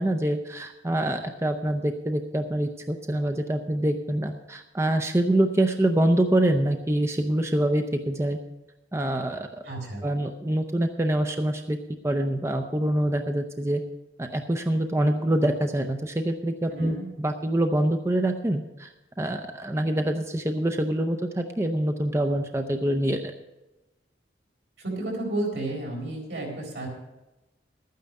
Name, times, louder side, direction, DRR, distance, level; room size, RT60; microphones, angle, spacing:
voice 1, 0.0-8.4 8.9-9.5 10.0-11.8 12.0-13.8 14.2-18.9 19.2-23.3, right 1 dB, 15° right, 6 dB, 0.6 m, -25 dB
voice 2, 9.6-10.1 16.7-17.1 24.8-26.9, right 2 dB, 80° right, -1 dB, 4.3 m, -32 dB
12.5 x 9.4 x 5.3 m, 1.0 s
head